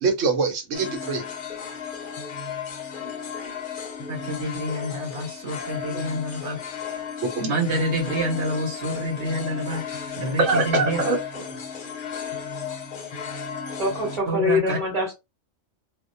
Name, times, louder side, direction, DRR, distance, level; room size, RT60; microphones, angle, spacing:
voice 1, 0.0-1.2 5.9-6.0 7.4-7.5 10.4-11.6, right 3 dB, 85° right, 1.1 m, -24 dB
sound 1, 0.7-14.2, left 6 dB, 55° left, 0.6 m, -34 dB
voice 2, 4.1-6.6 7.4-11.0 14.3-14.8, right 1 dB, 65° right, 1.1 m, -28 dB
voice 3, 13.8-15.1, left 3 dB, 25° right, 1.2 m, -24 dB
2.4 x 2.1 x 2.5 m
omnidirectional pair, 1.2 m